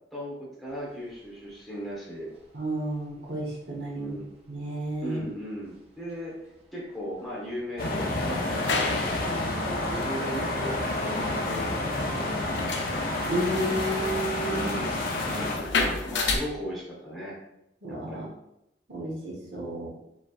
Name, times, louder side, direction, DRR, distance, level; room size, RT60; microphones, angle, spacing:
voice 1, 0.0-2.3 3.9-4.3 5.0-6.3 6.7-9.5 9.9-12.4 14.5-17.4 17.9-18.3, equal, ahead, -7 dB, 1.3 m, -38 dB
sound 1, 0.7-7.8 8.1-16.1, right 1 dB, 35° right, 0.9 m, -42 dB
voice 2, 2.5-4.1 4.5-5.2 13.3-14.9 17.8-18.3 18.9-19.9, right 1 dB, 65° right, -4 dB, 1.3 m, -32 dB
sound 2, 7.8-15.6, left 2 dB, 50° left, 0.7 m, -30 dB
sound 3, 8.2-16.4, left 3 dB, 90° left, 0.7 m, -33 dB
5.1 x 3.4 x 2.5 m, 0.82 s
head